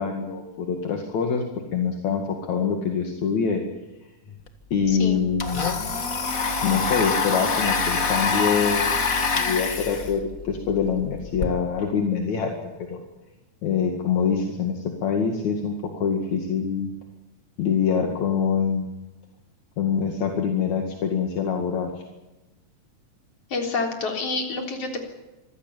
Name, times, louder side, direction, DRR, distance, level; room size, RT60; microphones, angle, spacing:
voice 1, 0.0-1.4 1.7-2.2 2.5-3.6 4.7-5.8 6.6-9.0 9.3-12.5 12.9-13.0 13.6-15.7 16.0-16.9 17.6-18.9 19.8-21.9, left 6 dB, 70° left, 3 dB, 3.4 m, -25 dB
Domestic sounds home sounds, 4.5-4.6 4.8-11.5, left 4 dB, 35° left, 1.7 m, -26 dB
voice 2, 4.9-5.2 23.5-25.0, left 3 dB, 50° left, 3 dB, 4.7 m, -28 dB
26.0 x 16.0 x 9.1 m, 1.1 s
omnidirectional pair, 3.5 m